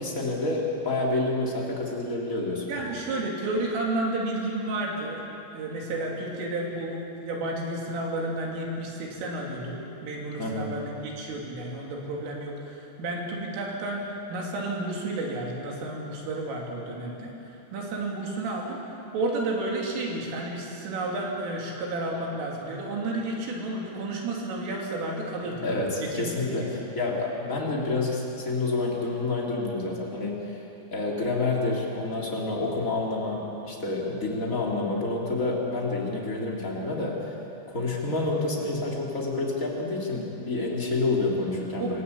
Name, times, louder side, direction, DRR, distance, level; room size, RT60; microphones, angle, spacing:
voice 1, 0.0-2.9 10.4-10.7 25.6-30.6 30.9-37.3 37.7-42.0, left 2 dB, 20° left, -3 dB, 2.5 m, -28 dB
voice 2, 2.7-5.2 5.5-25.7 26.0-26.5 26.8-26.9 41.8-42.0, right 2 dB, 75° right, -1 dB, 5.5 m, -32 dB
26.5 x 15.5 x 8.8 m, 2.9 s
omnidirectional pair, 5.8 m